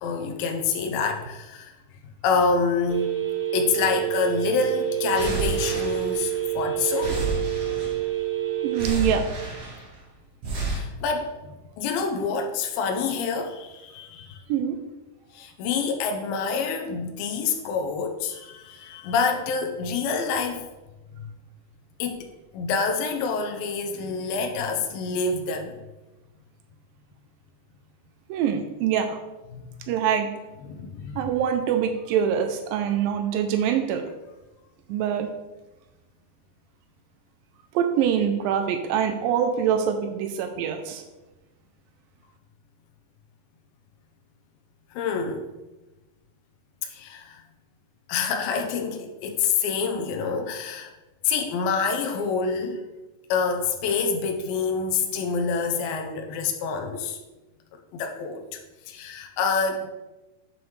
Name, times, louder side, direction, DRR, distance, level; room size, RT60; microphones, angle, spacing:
voice 1, 0.0-1.7 2.2-3.1 3.5-7.2 10.7-11.3 11.8-14.4 15.3-20.6 22.0-25.8 29.5-29.7 30.7-31.3 44.9-45.4 46.8-47.4 48.1-50.9 51.2-52.8 53.3-57.2 57.9-58.6 58.9-59.9, left 5 dB, 75° left, 4 dB, 2.3 m, -27 dB
Telephone, 2.9-8.9, right 13 dB, 40° right, 2.2 m, -28 dB
sound 1, 5.1-6.6 6.9-8.2 8.7-10.0 10.4-10.8, right 2 dB, 55° right, 1.9 m, -31 dB
voice 2, 8.6-9.2 14.5-14.8 28.3-29.2 29.9-30.3 31.2-34.1 34.9-35.3 37.7-41.0, right 8 dB, 90° right, 6 dB, 2.0 m, -24 dB
7.8 x 7.2 x 3.2 m, 1.1 s
omnidirectional pair, 4.7 m